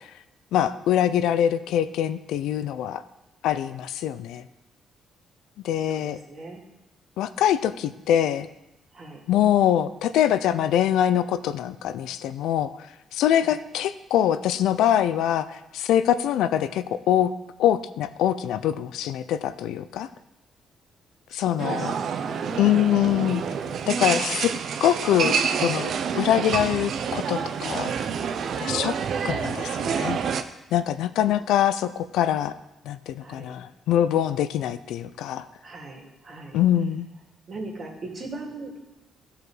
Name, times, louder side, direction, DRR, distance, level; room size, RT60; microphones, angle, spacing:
voice 1, 0.5-3.0 3.4-4.4 5.6-6.2 7.2-8.5 9.3-12.7 13.1-17.3 17.6-20.1 21.3-21.9 22.6-23.4 23.9-24.5 24.8-27.9 28.6-28.9 29.2-30.2 30.7-32.5 32.9-35.4 36.5-37.1, left 11 dB, 85° left, 13 dB, 0.4 m, -24 dB
voice 2, 5.8-6.6 8.9-9.2 13.4-13.6 21.3-24.0 33.2-33.6 35.6-36.6 37.5-38.8, right 2 dB, 45° right, 0 dB, 2.4 m, -40 dB
sound 1, 21.6-30.4, right 6 dB, 65° right, 0.6 m, -28 dB
14.0 x 4.8 x 4.9 m, 0.95 s
cardioid pair, 90°, 0 cm